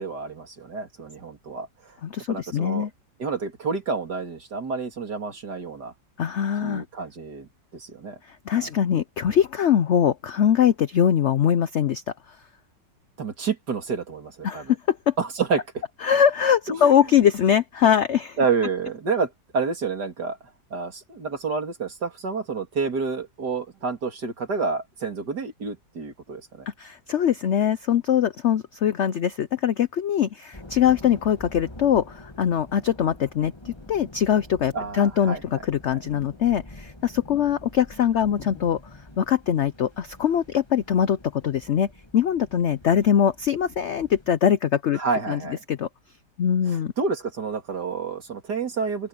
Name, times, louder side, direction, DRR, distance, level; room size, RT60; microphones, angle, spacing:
voice 1, 0.0-2.0 2.3-2.9 3.2-5.9 6.6-8.2 8.6-8.7 13.2-14.7 15.2-15.8 16.7-17.0 18.4-20.4 20.7-26.7 34.7-35.4 44.9-45.6 46.7-49.1, right 4 dB, 60° right, 3.5 m, -29 dB
voice 2, 2.0-2.9 6.2-6.8 8.3-12.0 14.4-15.1 16.0-18.4 26.8-38.8 39.2-45.0 45.3-45.4 45.7-45.9 46.4-46.9, left 9 dB, 80° left, 0.6 m, -22 dB
sound 1, 30.5-44.4, left 1 dB, 15° left, 2.0 m, -46 dB
open air
omnidirectional pair, 2.0 m